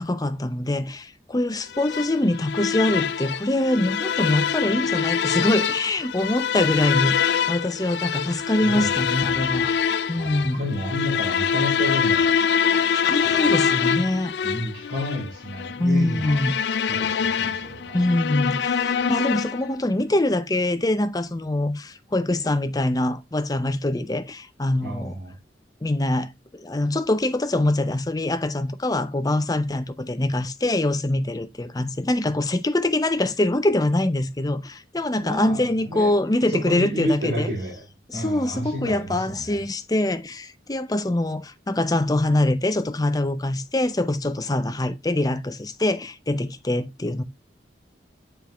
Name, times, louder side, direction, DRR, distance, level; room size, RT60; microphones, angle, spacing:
voice 1, 0.0-9.7 10.1-10.6 12.9-14.3 15.8-16.5 17.9-25.2 25.8-37.5 38.1-47.2, left 1 dB, 20° left, 0.6 m, -24 dB
sound 1, 1.7-19.7, left 7 dB, 70° left, 0.4 m, -25 dB
voice 2, 8.6-8.9 9.2-9.7 10.1-12.3 13.2-13.5 14.4-16.4 16.8-18.1 24.8-25.3 35.2-36.1 36.5-37.8 38.1-39.6, equal, 75° right, 3.4 m, -31 dB
7.1 x 4.6 x 3.4 m
head